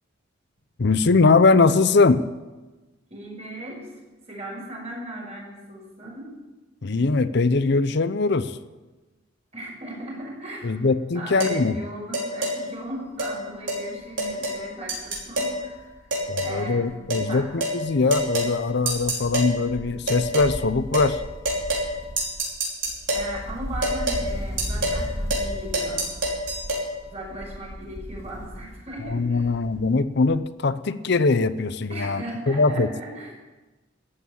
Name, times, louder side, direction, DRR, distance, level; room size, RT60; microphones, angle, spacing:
voice 1, 0.8-2.2 6.8-8.5 10.6-11.8 16.3-21.2 29.1-32.9, left 3 dB, 65° left, 13 dB, 0.7 m, -21 dB
voice 2, 3.1-4.0 4.3-6.3 9.5-10.8 11.1-15.9 16.4-17.5 23.1-26.1 27.0-29.5 31.9-33.3, right 1 dB, 35° right, -2 dB, 5.6 m, -37 dB
sound 1, 11.4-11.6 12.1-12.6 13.2-13.3 13.7-13.8 14.2-14.6 14.9-15.6 16.1-16.6 17.1-17.3 17.6-17.8 18.1-18.5 18.9-19.5 20.1-20.5 20.9-21.1 21.4-21.9 22.2-23.3 23.8-24.2 24.6-25.0 25.3-25.5 25.7-26.8, right 1 dB, 75° right, 5.1 m, -26 dB
Wind, 13.0-13.3 13.6-13.7 14.0-17.6 17.9-30.0 30.3-30.4, equal, 15° left, 2.2 m, -37 dB
14.0 x 8.9 x 8.7 m, 1.2 s
head